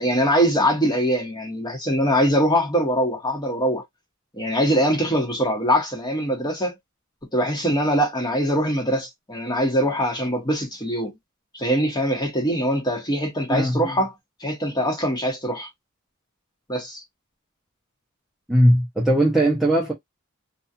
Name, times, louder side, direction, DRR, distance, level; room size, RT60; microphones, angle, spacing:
voice 1, 0.0-3.8 4.3-6.7 7.3-11.1 11.5-14.1 14.4-15.7 16.7-17.0, equal, 20° left, 1.1 m, -22 dB
voice 2, 13.5-13.8 18.5-19.9, right 1 dB, ahead, 0.6 m, -19 dB
2.7 x 2.4 x 2.3 m
head